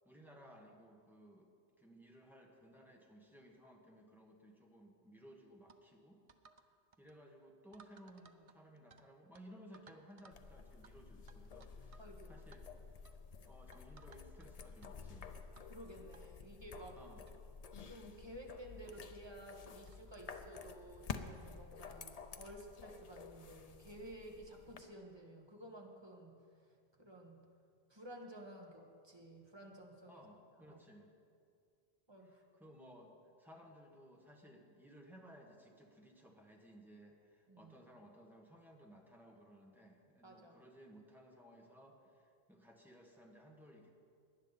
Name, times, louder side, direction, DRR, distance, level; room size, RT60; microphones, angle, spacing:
voice 1, 0.0-6.2 7.0-12.0 12.3-12.7 13.4-15.4 16.9-17.2 30.1-31.1 32.6-43.9, equal, ahead, 0 dB, 1.5 m, -59 dB
sound 1, 5.7-5.8 6.3-6.7 6.9-7.1 7.7-9.0 9.3-9.4 9.7-10.4 10.8-10.9 11.3-12.1 12.4-12.6 13.0-13.2 13.7-14.5 14.8-14.9 15.6-15.7 16.1-16.2 17.0-17.1 17.3-17.4 17.8-18.0 18.9-19.0 19.9-20.1, right 5 dB, 45° right, 0.5 m, -63 dB
sound 2, 10.3-24.8, left 5 dB, 45° left, 0.6 m, -51 dB
voice 2, 12.0-12.4 15.6-17.0 17.9-27.4 27.9-30.2 30.7-30.8 32.1-32.4 37.5-37.7 40.2-40.6, right 1 dB, 25° right, 1 dB, 1.4 m, -53 dB
18.5 x 10.5 x 4.1 m, 2.3 s
omnidirectional pair, 1.1 m